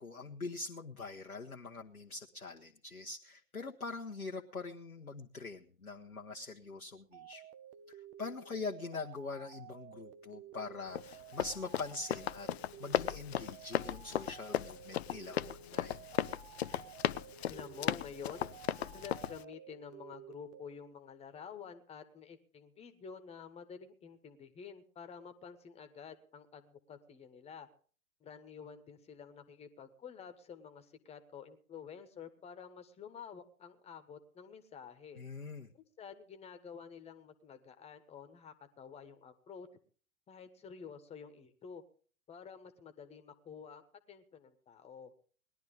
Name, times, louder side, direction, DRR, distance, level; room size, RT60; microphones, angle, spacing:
voice 1, 0.0-7.4 8.2-12.5 12.8-16.1 35.2-35.7, left 3 dB, 85° left, 0 dB, 1.2 m, -43 dB
sound 1, 7.1-20.6, right 10 dB, 20° right, 0.7 m, -53 dB
Run, 11.0-19.4, left 11 dB, 50° left, 0.6 m, -36 dB
voice 2, 17.5-18.5 18.8-27.7 28.2-35.2 35.7-39.7 40.3-41.8 42.3-45.1, left 7 dB, 15° left, 9 dB, 1.3 m, -50 dB
19.5 x 11.5 x 3.8 m, 0.42 s
figure-of-eight pair, 110°, 43 cm